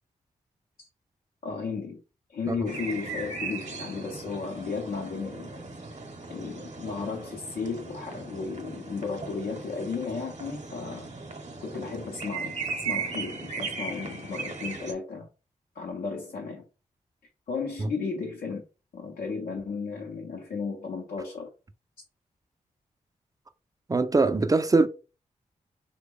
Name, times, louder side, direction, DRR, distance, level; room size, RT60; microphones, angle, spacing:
voice 1, 1.4-2.0 2.3-5.6 6.3-11.1 11.6-15.3 15.8-16.6 17.5-18.6 18.9-21.5, left 5 dB, 75° left, 0.7 m, -34 dB
sound 1, 2.7-14.9, right 4 dB, 50° right, 0.8 m, -37 dB
voice 2, 23.9-24.9, right 3 dB, 25° right, 0.4 m, -22 dB
2.9 x 2.2 x 3.6 m
supercardioid pair, 40°, 15 cm